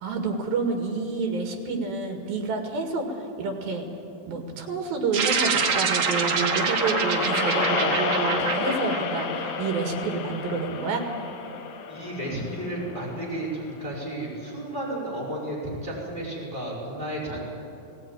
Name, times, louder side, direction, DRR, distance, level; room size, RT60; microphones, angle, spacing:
voice 1, 0.0-3.9 4.3-11.1, right 3 dB, 75° right, 4 dB, 3.8 m, -28 dB
sound 1, 5.1-9.8, right 5 dB, 60° right, 1.7 m, -26 dB
sound 2, 5.8-14.0, left 7 dB, 70° left, 2.6 m, -32 dB
voice 2, 11.9-17.4, right 1 dB, 10° right, -6 dB, 5.1 m, -32 dB
18.5 x 18.0 x 9.1 m, 2.9 s
omnidirectional pair, 4.2 m